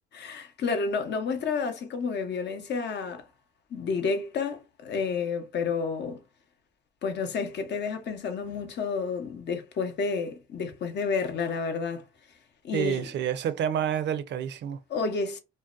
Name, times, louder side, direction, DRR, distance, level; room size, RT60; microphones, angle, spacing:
voice 1, 0.1-3.2 3.7-6.2 7.0-12.0 12.6-13.1 14.9-15.4, left 5 dB, 60° left, 0.7 m, -30 dB
voice 2, 12.7-14.8, right 9 dB, 65° right, 0.4 m, -28 dB
2.6 x 2.1 x 2.4 m
cardioid pair, 90°, 20 cm